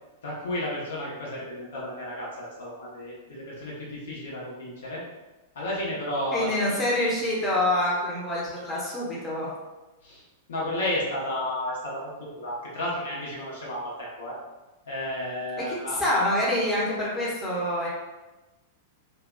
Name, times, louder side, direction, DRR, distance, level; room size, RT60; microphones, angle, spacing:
voice 1, 0.2-5.0 5.5-6.8 10.0-10.2 10.5-14.4 14.8-16.0, left 1 dB, 65° left, -6 dB, 0.9 m, -32 dB
voice 2, 6.3-9.5 15.6-17.9, left 1 dB, 15° left, -7 dB, 0.8 m, -26 dB
2.7 x 2.2 x 2.2 m, 1.1 s
figure-of-eight pair, 100°, 0 cm